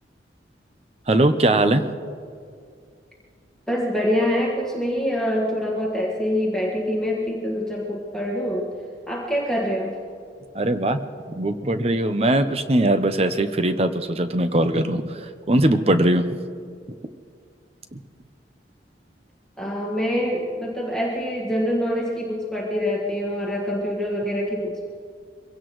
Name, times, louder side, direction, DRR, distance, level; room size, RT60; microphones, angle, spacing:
voice 1, 1.1-1.9 10.5-11.0 11.3-16.4 17.9-18.0, right 1 dB, 35° right, 9 dB, 0.7 m, -21 dB
voice 2, 3.7-8.7 9.1-10.0 19.6-24.9, equal, 5° left, -4 dB, 1.6 m, -25 dB
23.5 x 16.5 x 3.2 m, 2.2 s
head